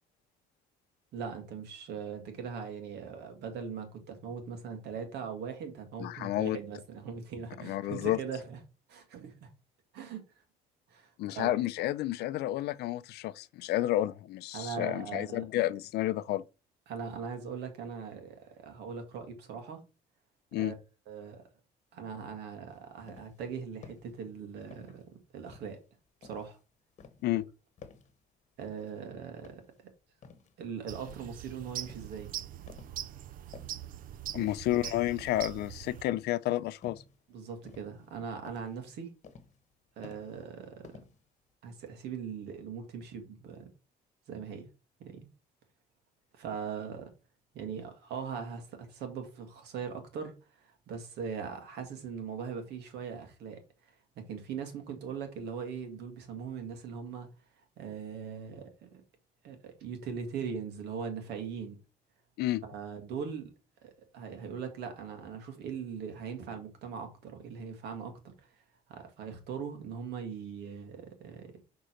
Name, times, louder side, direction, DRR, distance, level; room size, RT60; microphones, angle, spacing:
voice 1, 1.1-8.6 8.9-9.5 9.9-10.2 10.9-11.6 14.5-15.4 16.9-19.8 20.6-20.7 21.1-21.4 21.9-25.0 25.3-25.8 26.2-26.6 27.3-27.4 28.6-29.9 30.6-32.3 34.3-34.5 37.3-39.1 40.0-41.0 41.6-43.7 44.3-44.7 45.0-45.2 46.3-47.1 47.5-57.3 57.8-59.0 59.4-61.8 62.6-63.5 63.8-68.5 68.9-71.5, right 6 dB, 80° right, 2.0 m, -40 dB
voice 2, 6.0-6.6 7.6-8.2 11.2-16.4 20.5-20.7 27.2-27.4 34.3-37.0 62.4-62.6, left 15 dB, 75° left, 0.5 m, -31 dB
sound 1, 22.7-23.5 23.8-24.1 24.6-25.1 25.5-26.6 27.0-27.3 27.8-28.2 28.6-29.0 29.4-30.6 31.1-31.4 31.8-32.2 32.7-33.1 33.4-33.9 34.4-34.8 35.2-35.6 36.0-36.4 36.8-37.2 37.7-38.2 38.5-38.8 39.2-39.7 40.0-40.6 40.8-41.5, left 5 dB, 45° left, 1.1 m, -53 dB
sound 2, 30.9-36.0, right 12 dB, 55° right, 0.5 m, -42 dB
6.4 x 3.8 x 4.4 m
cardioid pair, 110°, 17 cm